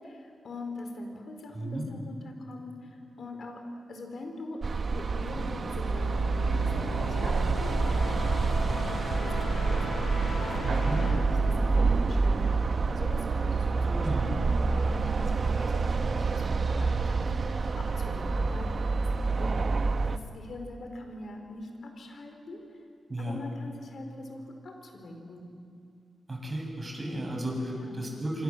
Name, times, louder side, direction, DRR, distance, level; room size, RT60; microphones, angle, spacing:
voice 1, 0.0-3.6 3.9-6.7 7.1-19.5 19.8-22.6 23.2-25.5 27.7-28.1, left 2 dB, 70° left, 4 dB, 4.6 m, -43 dB
voice 2, 1.5-1.9 10.6-11.0 13.7-14.3 23.1-23.4 26.3-28.4, right 1 dB, 35° right, 0 dB, 7.9 m, -34 dB
sound 1, 4.6-20.2, right 4 dB, 55° right, 1.1 m, -27 dB
sound 2, 5.2-12.9, left 2 dB, 85° left, 6.6 m, -38 dB
26.0 x 26.0 x 7.6 m, 2.4 s
cardioid pair, 70°, 0 cm